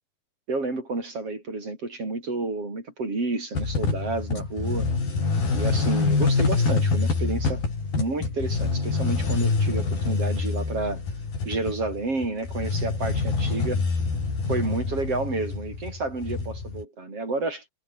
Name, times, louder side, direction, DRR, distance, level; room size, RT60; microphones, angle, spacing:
voice 1, 0.5-4.9 5.5-7.6 8.0-11.0 11.5-13.9 14.5-17.7, right 3 dB, 40° right, 8.8 m, -30 dB
sound 1, 3.6-16.8, left 4 dB, 85° left, 9.2 m, -26 dB
omnidirectional pair, 4.1 m